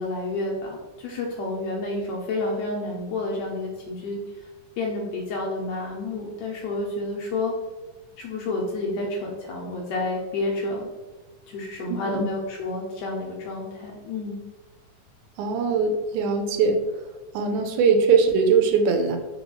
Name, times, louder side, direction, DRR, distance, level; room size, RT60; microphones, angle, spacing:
voice 1, 0.0-4.2 4.8-7.5 8.2-10.9 11.5-14.4, left 2 dB, 80° left, -2 dB, 1.6 m, -30 dB
voice 2, 11.9-12.2 15.4-16.8 17.3-19.2, right 5 dB, 85° right, 5 dB, 2.1 m, -21 dB
5.4 x 2.3 x 2.9 m, 1.2 s
omnidirectional pair, 3.5 m